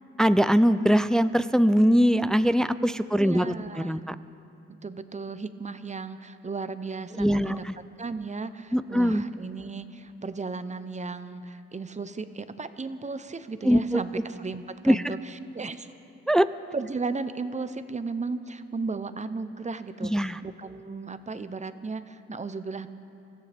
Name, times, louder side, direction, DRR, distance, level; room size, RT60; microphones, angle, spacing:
voice 1, 0.2-4.1 7.2-7.8 8.7-9.2 13.6-14.0 14.9-15.1 16.3-16.5 20.0-20.4, equal, ahead, 13 dB, 0.4 m, -22 dB
voice 2, 3.2-3.9 4.8-7.7 8.0-15.9 16.7-22.9, right 4 dB, 25° right, 11 dB, 0.7 m, -35 dB
24.5 x 14.5 x 3.5 m, 2.8 s
cardioid pair, 75°, 29 cm